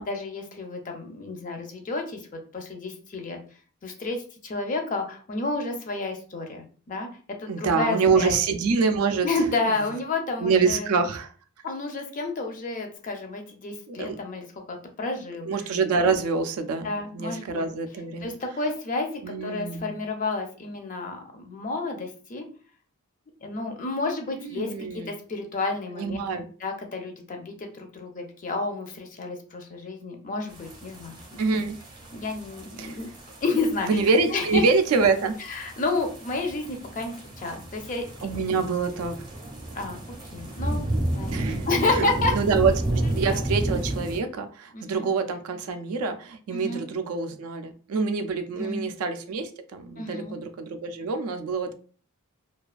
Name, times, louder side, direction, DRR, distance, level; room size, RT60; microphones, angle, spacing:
voice 1, 0.0-3.4 3.8-8.4 9.2-10.9 11.6-15.5 16.8-17.7 18.2-19.1 19.4-22.5 23.4-26.2 26.6-31.4 32.1-33.1 33.4-34.0 34.3-34.6 35.5-38.0 39.7-40.0 40.3-40.8 41.1-42.3 43.3-43.4 44.7-45.1 46.5-46.9 48.5-48.9 50.0-50.4, left 3 dB, 35° left, 4 dB, 0.4 m, -30 dB
voice 2, 7.5-9.3 10.4-11.3 13.9-14.2 15.5-16.9 17.1-18.3 19.2-20.0 24.4-25.1 26.0-26.4 31.4-31.8 32.8-33.0 33.9-35.3 38.2-39.2 41.3-51.7, right 4 dB, 75° right, 8 dB, 0.4 m, -26 dB
sound 1, 30.5-44.2, right 1 dB, 20° right, 0.5 m, -32 dB
2.3 x 2.3 x 2.4 m, 0.42 s
head